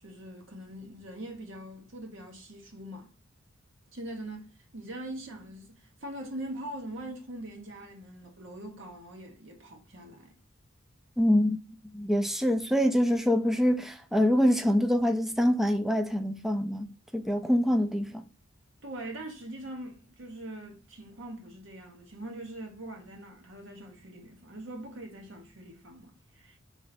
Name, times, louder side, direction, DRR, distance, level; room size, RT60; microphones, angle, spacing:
voice 1, 0.0-3.1 3.9-4.4 4.7-10.4 18.8-26.6, right 1 dB, 65° right, 1.2 m, -42 dB
voice 2, 11.2-11.6 11.9-18.2, equal, ahead, 0.4 m, -25 dB
3.3 x 3.3 x 4.0 m
head